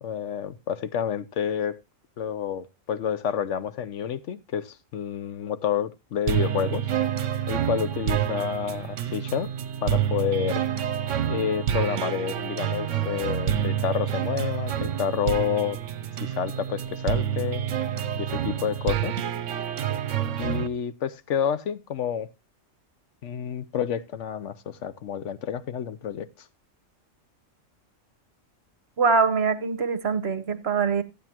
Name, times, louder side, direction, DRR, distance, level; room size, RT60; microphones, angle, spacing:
voice 1, 0.0-1.8 2.2-6.9 7.5-9.5 9.8-10.6 11.3-15.8 16.2-17.6 18.2-19.2 20.4-22.3 23.2-26.3, left 8 dB, 70° left, 1.2 m, -29 dB
sound 1, 6.3-20.7, right 10 dB, 75° right, 1.1 m, -28 dB
voice 2, 29.0-31.0, right 5 dB, 60° right, 1.2 m, -23 dB
14.5 x 8.8 x 2.9 m
omnidirectional pair, 1.3 m